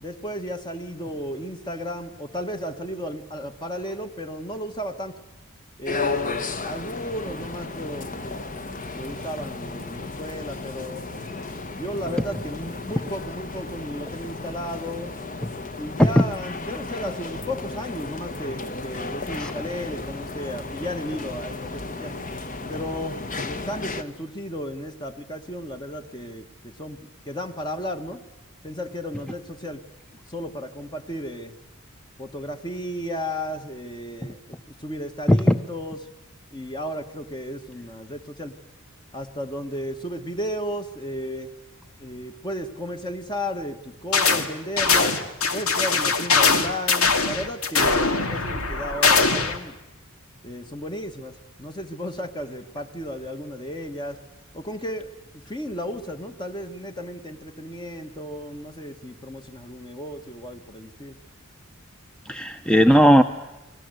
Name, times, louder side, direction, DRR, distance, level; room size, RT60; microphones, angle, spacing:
voice 1, 0.0-5.2 5.8-6.3 6.6-8.4 9.0-11.0 11.8-15.1 15.7-22.1 22.7-23.2 23.4-28.2 28.6-29.8 30.3-31.6 32.2-36.1 36.5-38.5 39.1-41.5 42.0-45.2 45.5-49.8 50.4-54.2 54.5-61.2, equal, 20° left, 6 dB, 1.6 m, -34 dB
sound 1, 5.8-24.0, left 3 dB, 40° left, 1.7 m, -34 dB
sound 2, 44.1-44.5 44.8-49.6, left 4 dB, 80° left, 2.6 m, -21 dB
voice 2, 62.3-63.2, equal, 5° left, 8 dB, 0.9 m, -16 dB
30.0 x 21.0 x 8.0 m, 1.0 s
head